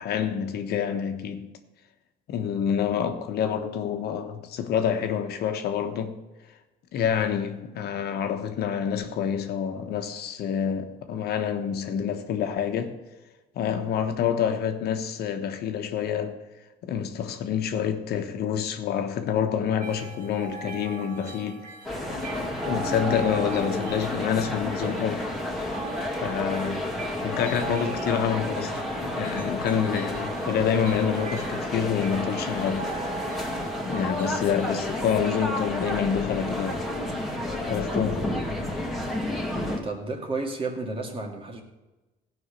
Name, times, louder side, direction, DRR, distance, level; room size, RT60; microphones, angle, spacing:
voice 1, 0.0-1.5 2.3-6.2 6.9-12.9 13.5-16.4 16.8-21.7 22.4-25.3 26.2-26.9 27.2-32.9 33.8-36.9 37.7-38.4, left 8 dB, 70° left, 1.3 m, -27 dB
sound 1, 19.8-34.9, right 4 dB, 55° right, 3.5 m, -40 dB
sound 2, 21.8-39.8, left 1 dB, ahead, 2.1 m, -31 dB
voice 2, 39.6-41.6, right 3 dB, 30° right, 2.3 m, -32 dB
16.0 x 5.6 x 6.7 m
cardioid pair, 110°, 17 cm